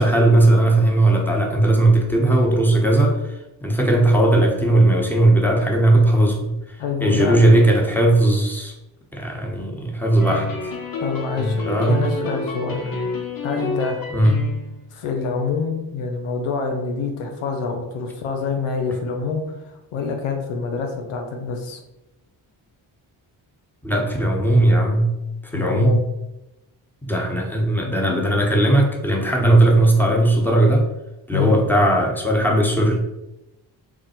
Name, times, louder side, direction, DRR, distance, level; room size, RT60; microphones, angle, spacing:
voice 1, 0.0-6.8 7.0-8.7 9.1-10.5 11.6-12.1 14.1-14.5 23.8-25.2 25.5-26.0 27.0-30.9 31.3-33.0, right 1 dB, 5° left, 0 dB, 1.1 m, -17 dB
voice 2, 6.8-7.4 11.0-12.8 13.4-14.0 14.9-21.8 25.5-26.0 31.3-31.6, left 5 dB, 85° left, 3 dB, 0.7 m, -26 dB
sound 1, 10.2-14.8, left 2 dB, 45° left, 0.9 m, -28 dB
3.7 x 2.3 x 4.4 m, 0.93 s
supercardioid pair, 45°, 49 cm